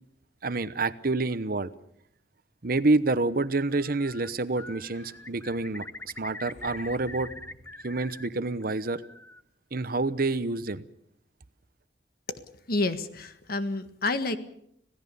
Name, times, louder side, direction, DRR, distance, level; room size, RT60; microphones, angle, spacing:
voice 1, 0.4-1.7 2.6-7.3 7.8-9.0 9.7-10.9, right 3 dB, 55° right, 14 dB, 0.9 m, -28 dB
Sliding door, 3.4-8.1, left 1 dB, 40° left, 6.1 m, -54 dB
Bird, 3.7-4.3 4.6-8.3 8.6-9.4, left 2 dB, 15° left, 0.8 m, -43 dB
voice 2, 12.7-14.4, left 2 dB, 60° left, 9 dB, 1.6 m, -29 dB
26.5 x 17.0 x 7.0 m, 0.73 s
head